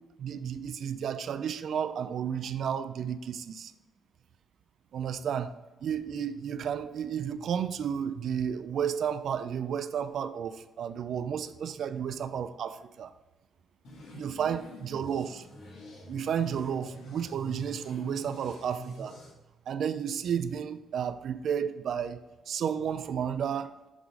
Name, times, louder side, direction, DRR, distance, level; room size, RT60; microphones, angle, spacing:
voice 1, 0.2-3.7 4.9-5.5 5.8-13.1 14.1-15.5 16.1-19.2 19.7-23.8, right 8 dB, 65° right, 0.4 m, -32 dB
sound 1, 13.8-19.3, left 1 dB, 75° left, 2.0 m, -46 dB
8.1 x 3.7 x 4.8 m
cardioid pair, 90°, 0 cm